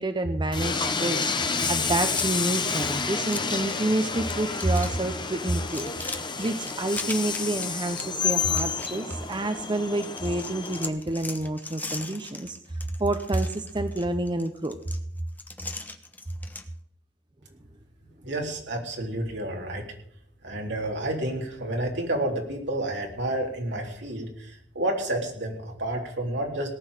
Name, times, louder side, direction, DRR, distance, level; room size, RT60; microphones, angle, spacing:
voice 1, 0.0-5.9 6.4-12.6 13.0-14.8, right 2 dB, 25° right, 9 dB, 0.7 m, -28 dB
Train, 0.5-10.9, left 5 dB, 25° left, 1.2 m, -30 dB
sound 1, 1.4-3.9 4.2-4.9 5.2-9.7 10.0-16.7, left 2 dB, 10° left, 1.2 m, -40 dB
voice 2, 18.2-19.9 20.4-26.7, right 1 dB, 65° right, 1 dB, 3.8 m, -30 dB
18.5 x 6.2 x 8.9 m, 0.68 s
head